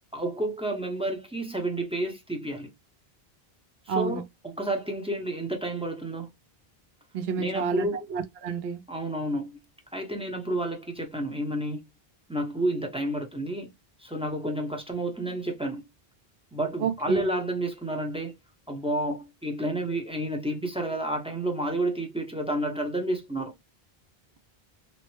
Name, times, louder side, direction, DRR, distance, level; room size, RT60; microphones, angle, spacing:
voice 1, 0.1-2.7 3.9-6.3 7.4-8.1 8.9-9.6 9.9-11.9 12.3-13.7 14.0-15.8 16.5-18.3 18.7-23.5, right 1 dB, 5° right, 0.5 m, -30 dB
voice 2, 3.9-4.2 7.1-8.8 16.8-17.3, right 6 dB, 85° right, 0.8 m, -29 dB
3.0 x 2.1 x 2.9 m
omnidirectional pair, 1.0 m